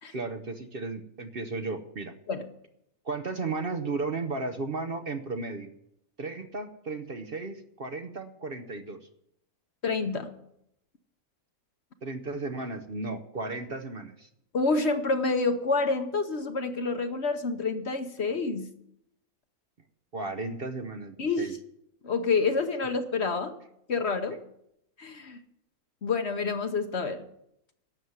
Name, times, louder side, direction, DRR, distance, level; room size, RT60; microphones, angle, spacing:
voice 1, 0.1-2.1 3.0-5.7 6.2-9.0 12.0-14.3 20.1-21.5, right 3 dB, 45° right, 7 dB, 0.9 m, -34 dB
voice 2, 9.8-10.3 14.5-18.7 21.2-21.6 22.0-23.5 23.9-24.4 25.0-25.4 26.0-27.2, left 4 dB, 50° left, 8 dB, 1.1 m, -28 dB
12.0 x 7.2 x 9.4 m, 0.77 s
omnidirectional pair, 1.6 m